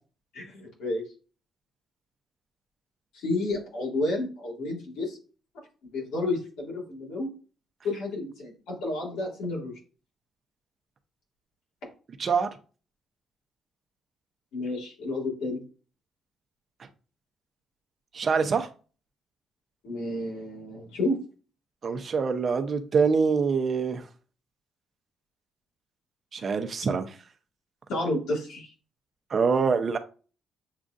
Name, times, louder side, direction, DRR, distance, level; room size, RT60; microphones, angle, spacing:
voice 1, 0.3-1.0 3.1-5.2 5.9-7.3 7.8-9.8 14.5-15.6 19.8-21.2 27.9-28.7, left 2 dB, 90° left, 2.1 m, -31 dB
voice 2, 18.1-18.7 21.8-24.0 26.3-27.1 29.3-30.0, right 5 dB, 45° right, 0.6 m, -25 dB
7.3 x 2.5 x 2.4 m
cardioid pair, 90°, 0 cm